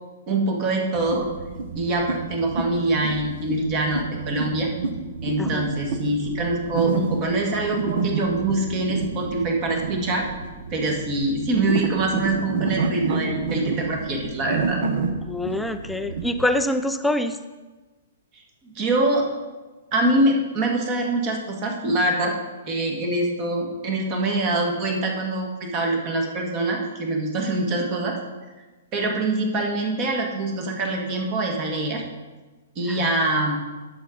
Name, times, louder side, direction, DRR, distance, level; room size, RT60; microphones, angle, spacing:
voice 1, 0.3-1.3 1.8-4.7 5.2-10.3 10.7-14.8 18.8-19.2 19.9-22.3 22.7-28.2 28.9-32.0 32.8-33.5, right 2 dB, 30° right, 1 dB, 1.8 m, -24 dB
sound 1, 0.9-16.5, right 5 dB, 60° right, 1.0 m, -29 dB
voice 2, 15.2-17.4 32.9-33.0, left 1 dB, 5° left, 8 dB, 0.4 m, -25 dB
10.5 x 7.7 x 3.9 m, 1.2 s
hypercardioid pair, 155°, 0 cm